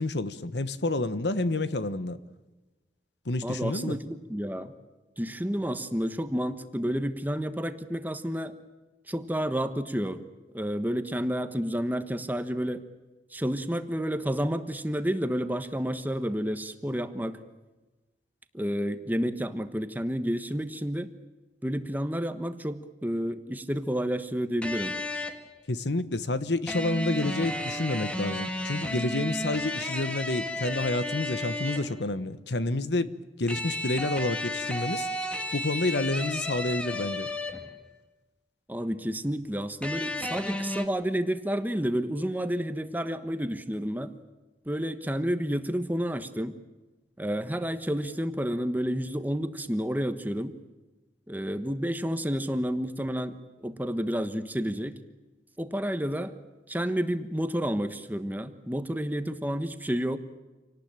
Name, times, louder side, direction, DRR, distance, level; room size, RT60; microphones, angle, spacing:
voice 1, 0.0-2.2 3.3-4.0 25.7-35.1 35.5-37.3, left 2 dB, 75° left, 1.2 m, -29 dB
voice 2, 3.4-4.7 5.2-8.5 9.1-10.2 10.5-12.8 13.3-17.4 18.5-21.1 21.6-24.9 38.7-44.1 44.6-46.6 47.2-50.5 51.3-55.0 55.6-56.3 56.7-60.2, equal, 10° right, 1.2 m, -30 dB
electricguitar starspangledbanner, 24.6-25.5 26.7-32.0 33.5-37.8 39.8-40.9, left 1 dB, 5° left, 1.8 m, -33 dB
27.0 x 19.0 x 9.0 m
head